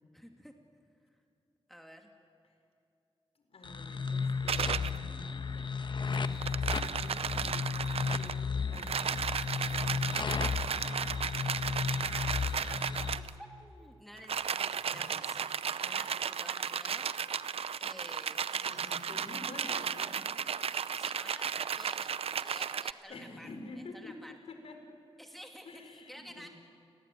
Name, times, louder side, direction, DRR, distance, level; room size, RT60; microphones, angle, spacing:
voice 1, 0.1-0.5 1.7-2.1 11.9-17.1 17.8-19.3 20.9-23.5 23.7-24.3 25.2-26.5, equal, ahead, 3 dB, 2.5 m, -52 dB
voice 2, 3.3-5.7 6.1-10.5 14.9-15.3 18.6-20.3 23.1-24.9 25.6-26.5, left 2 dB, 80° left, 5 dB, 4.8 m, -49 dB
sound 1, 3.6-13.2, left 5 dB, 50° left, 1.3 m, -34 dB
sound 2, 4.5-5.0 6.1-8.4 8.7-13.3 14.2-22.9, right 7 dB, 80° right, 0.7 m, -34 dB
29.5 x 21.5 x 9.2 m, 2.7 s
wide cardioid pair, 105°, 10 cm